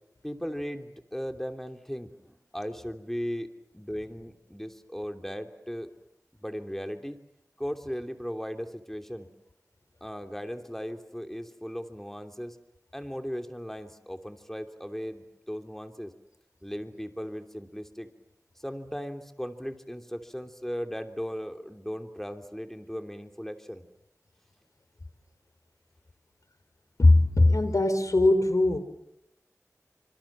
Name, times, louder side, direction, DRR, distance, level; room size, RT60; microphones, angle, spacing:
voice 1, 0.2-3.5 3.7-5.9 6.4-7.2 7.6-9.3 10.0-12.6 12.9-16.1 16.6-18.1 18.6-23.8, equal, 5° left, 6 dB, 3.0 m, -37 dB
voice 2, 27.0-28.8, left 2 dB, 70° left, 11 dB, 3.5 m, -20 dB
29.0 x 26.5 x 7.5 m, 0.80 s
wide cardioid pair, 40°, 6 cm